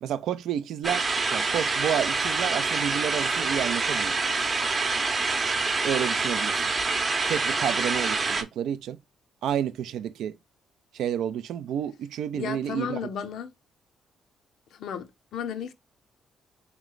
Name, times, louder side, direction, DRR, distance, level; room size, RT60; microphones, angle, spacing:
voice 1, 0.0-4.2 5.8-6.6 7.3-9.0 9.4-10.4 10.9-13.0, right 9 dB, 75° right, 0.4 m, -30 dB
sound 1, 0.8-8.4, right 3 dB, 30° right, 0.7 m, -26 dB
voice 2, 12.3-13.5 14.7-15.7, left 8 dB, 75° left, 0.5 m, -34 dB
3.2 x 3.0 x 3.8 m
cardioid pair, 90°, 0 cm